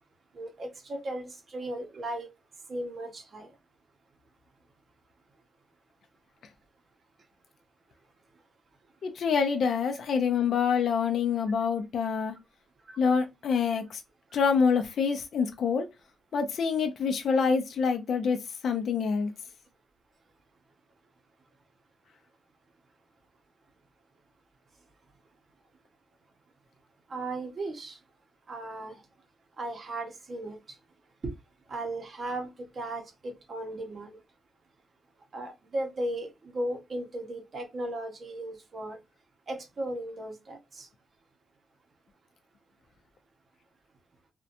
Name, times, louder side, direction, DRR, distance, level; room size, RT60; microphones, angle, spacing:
voice 1, 0.3-2.3 2.7-3.5 12.9-13.0 27.1-28.0 28.5-29.0 29.6-30.8 31.2-31.3 31.7-34.2 35.3-39.0 39.5-40.9, right 1 dB, 40° right, 0.6 m, -36 dB
voice 2, 9.0-12.3 13.0-14.0 14.3-15.9 16.3-18.4 18.6-19.3, left 6 dB, 60° left, 0.4 m, -26 dB
2.6 x 2.1 x 2.5 m
cardioid pair, 135°, 0 cm